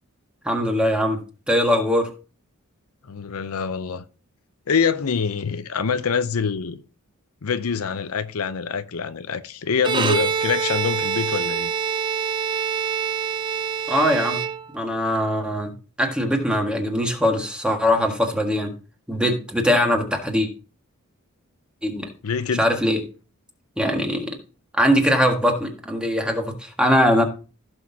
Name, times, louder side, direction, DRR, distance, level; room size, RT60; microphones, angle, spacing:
voice 1, 0.4-1.2 1.5-2.1 13.9-14.4 14.7-18.7 19.1-20.5 21.8-22.1 22.6-23.0 23.8-24.3 24.8-27.2, equal, 5° right, 1.7 m, -21 dB
voice 2, 3.1-4.0 4.7-6.8 7.4-11.7 22.2-22.7, left 6 dB, 80° left, 0.7 m, -25 dB
Bowed string instrument, 9.8-15.0, right 6 dB, 20° right, 0.5 m, -25 dB
16.0 x 6.3 x 2.8 m
head